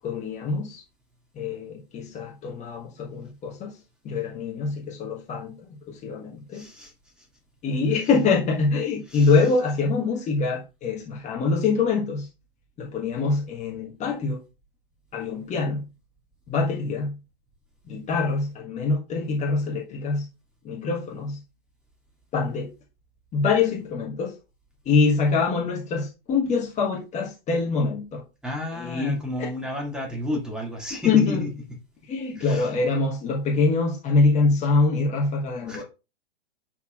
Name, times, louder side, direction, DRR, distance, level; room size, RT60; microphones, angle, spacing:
voice 1, 0.0-0.8 1.3-6.7 7.6-12.3 12.8-14.4 15.1-15.9 16.5-17.2 17.9-20.3 20.6-21.4 22.3-22.7 23.3-24.4 24.8-28.2 28.7-29.5 30.9-31.5 32.0-35.8, left 4 dB, 25° left, 1.3 m, -24 dB
voice 2, 6.5-6.9 9.1-9.3 28.4-31.5 32.4-32.7 35.7-35.8, left 1 dB, 5° right, 2.1 m, -32 dB
8.2 x 5.7 x 2.4 m
figure-of-eight pair, 105°, 29 cm